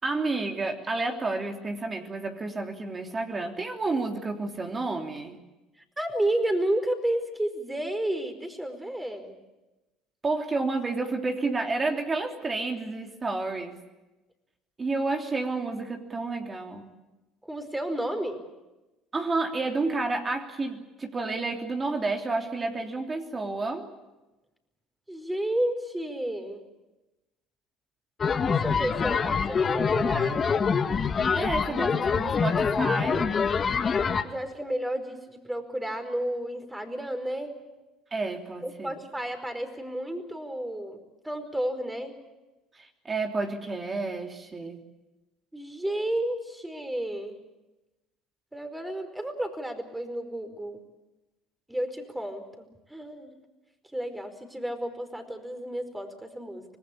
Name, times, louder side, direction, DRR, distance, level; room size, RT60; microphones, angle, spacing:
voice 1, 0.0-5.4 10.2-13.8 14.8-16.9 19.1-23.9 31.3-33.3 38.1-38.9 42.7-44.8, right 3 dB, 30° right, 3 dB, 3.2 m, -30 dB
voice 2, 6.0-9.3 17.4-18.4 25.1-26.6 28.5-30.4 34.2-37.6 38.6-42.1 45.5-47.4 48.5-50.8 51.7-53.3 53.9-56.6, right 1 dB, 10° right, 7 dB, 4.8 m, -31 dB
sound 1, 28.2-34.2, left 5 dB, 35° left, 1.8 m, -25 dB
25.5 x 19.5 x 8.6 m, 1.0 s
supercardioid pair, 80°, 0 cm